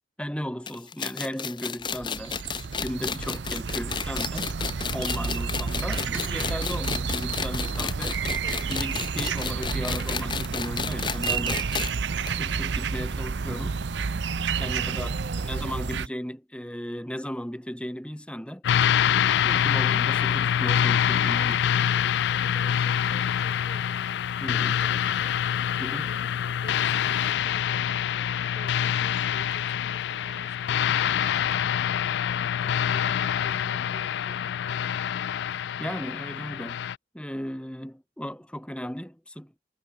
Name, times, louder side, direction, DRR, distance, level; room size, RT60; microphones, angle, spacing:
voice 1, 0.2-2.4 2.8-4.5 4.9-8.2 8.7-11.7 12.3-13.8 14.6-15.1 15.4-18.6 19.4-21.6 24.4-24.8 25.8-26.1 35.8-36.8 37.1-39.5, equal, 5° left, 1.6 m, -35 dB
sound 1, 0.7-12.0 12.3-12.4 12.6-12.7 13.6-13.7, left 6 dB, 25° left, 0.7 m, -32 dB
sound 2, 1.8-16.1, right 5 dB, 70° right, 0.6 m, -30 dB
voice 2, 15.0-15.5 22.4-24.1 24.5-25.4 25.9-31.7 32.6-35.1, right 1 dB, 40° right, 6.7 m, -49 dB
sound 3, 18.6-37.0, left 9 dB, 65° left, 0.3 m, -25 dB
head